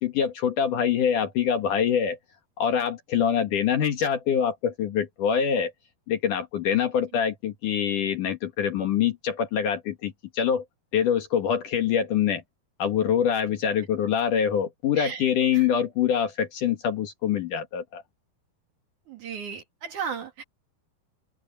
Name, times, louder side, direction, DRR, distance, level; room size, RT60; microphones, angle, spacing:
voice 1, 0.0-2.2 2.6-5.7 6.1-10.6 10.9-12.4 12.8-18.0, left 8 dB, 60° left, 2.8 m, -25 dB
voice 2, 15.0-15.7 19.1-20.4, right 6 dB, 55° right, 3.3 m, -35 dB
open air
omnidirectional pair, 4.7 m